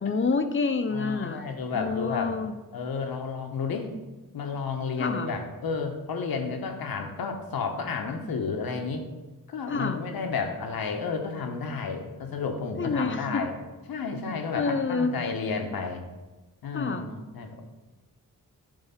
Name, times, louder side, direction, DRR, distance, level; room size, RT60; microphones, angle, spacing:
voice 1, 0.0-1.4 1.7-2.5 5.0-5.3 9.7-10.0 12.8-13.4 14.5-15.2 16.7-17.1, left 4 dB, 35° left, 9 dB, 0.7 m, -28 dB
voice 2, 0.9-2.3 2.7-3.9 4.3-9.0 9.5-13.5 13.9-16.0 16.6-17.7, left 5 dB, 85° left, 4 dB, 1.1 m, -31 dB
8.9 x 3.5 x 5.7 m, 1.1 s
cardioid pair, 85°, 35 cm